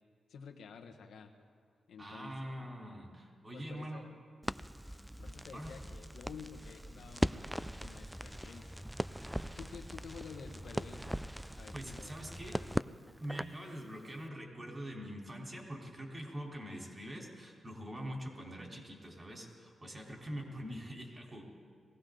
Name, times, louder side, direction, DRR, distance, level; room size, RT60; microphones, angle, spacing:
voice 1, 0.3-1.3 1.9-2.7 3.5-4.1 5.2-7.4 7.8-8.7 9.6-11.2 11.6-12.8, left 6 dB, 85° left, 4 dB, 1.3 m, -51 dB
voice 2, 2.0-4.0 5.5-5.7 11.7-12.6 13.2-21.4, equal, 25° right, -1 dB, 3.7 m, -44 dB
Crackle, 4.4-13.6, equal, 5° right, 0.3 m, -40 dB
21.5 x 16.5 x 3.9 m, 2.2 s
cardioid pair, 80°, 0 cm